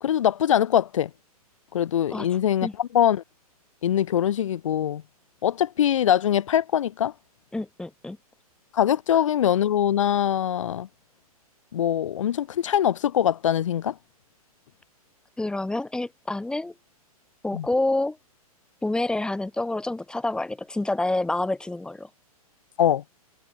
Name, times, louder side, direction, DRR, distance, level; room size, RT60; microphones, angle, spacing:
voice 1, 0.0-1.1 1.7-3.2 3.8-5.0 5.4-7.1 8.7-10.9 11.7-14.0 17.5-17.7 22.8-23.0, left 10 dB, 55° left, 0.9 m, -23 dB
voice 2, 7.5-8.2 15.4-16.7 17.4-18.2 18.8-22.1, left 2 dB, 5° left, 3.3 m, -27 dB
figure-of-eight pair, 110°, 19 cm